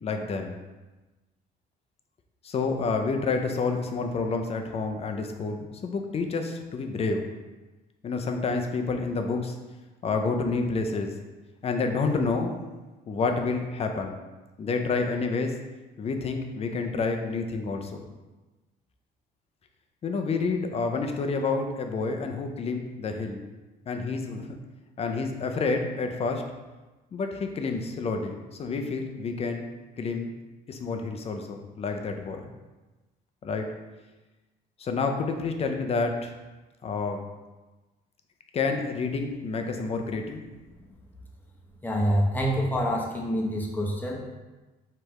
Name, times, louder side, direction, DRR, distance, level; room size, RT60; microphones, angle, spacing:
voice 1, 0.0-0.6 2.4-7.3 8.0-9.5 10.0-11.1 11.6-12.5 13.1-14.1 14.6-15.5 16.0-18.1 20.0-23.4 23.9-24.6 25.0-26.4 27.1-29.7 30.0-30.3 30.7-32.5 33.4-33.7 34.8-36.3 36.8-37.2 38.5-40.4, left 4 dB, 35° left, 4 dB, 0.6 m, -29 dB
voice 2, 41.8-44.2, equal, 10° left, -1 dB, 0.8 m, -26 dB
4.8 x 3.3 x 3.1 m, 1.2 s
cardioid pair, 110°, 17 cm